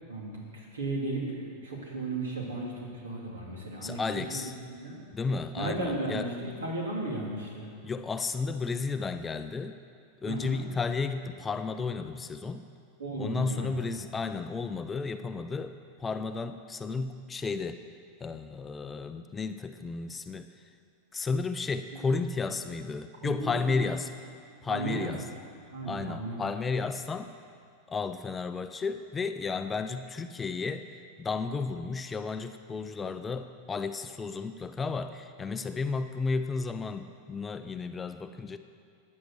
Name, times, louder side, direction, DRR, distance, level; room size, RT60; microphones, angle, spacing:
voice 1, 0.1-4.0 4.3-5.0 5.6-7.7 10.3-10.6 13.0-13.7 23.2-23.5 23.8-23.9 24.7-25.1 25.7-26.4, right 2 dB, 70° right, -2 dB, 3.1 m, -35 dB
voice 2, 3.8-4.5 5.1-6.3 7.8-9.8 10.2-12.6 13.2-17.8 18.2-20.5 21.1-24.1 24.6-25.3 25.9-27.3 27.9-38.6, left 4 dB, 15° left, 9 dB, 0.6 m, -33 dB
14.0 x 9.7 x 6.5 m, 2.4 s
figure-of-eight pair, 90°, 0 cm